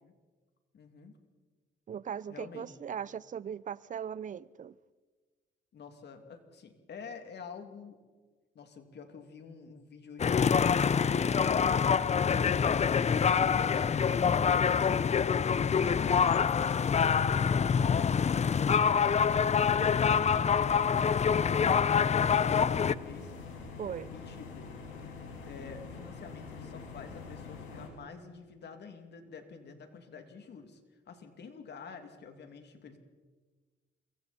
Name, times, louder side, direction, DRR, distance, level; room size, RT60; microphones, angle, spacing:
voice 1, 0.7-1.1 2.3-2.7 5.7-8.0 8.5-18.9 19.7-21.7 23.0-23.3 23.6-23.8 24.1-24.7 25.0-25.2 25.5-33.0, left 5 dB, 60° left, 2.7 m, -49 dB
voice 2, 1.9-4.8 23.8-24.2, right 8 dB, 40° right, 0.6 m, -39 dB
sound 1, 10.2-22.9, left 6 dB, 35° left, 0.6 m, -26 dB
sound 2, 22.3-27.9, left 4 dB, 80° left, 5.4 m, -45 dB
27.0 x 23.0 x 4.4 m
cardioid pair, 90°, 20 cm